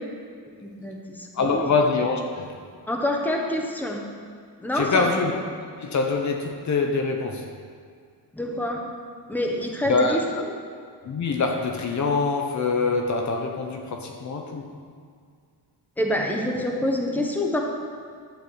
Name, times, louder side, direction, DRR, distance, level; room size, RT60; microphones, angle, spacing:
voice 1, 0.6-1.6 2.9-4.0 4.6-5.1 8.3-8.8 9.3-10.2 10.5-10.6 16.0-17.6, left 1 dB, 5° left, 0 dB, 1.1 m, -26 dB
voice 2, 1.4-2.5 4.7-5.4 5.8-7.5 9.9-10.2 11.0-14.7, left 4 dB, 45° left, 3 dB, 0.9 m, -24 dB
11.5 x 4.4 x 8.1 m, 2.2 s
cardioid pair, 155°, 40 cm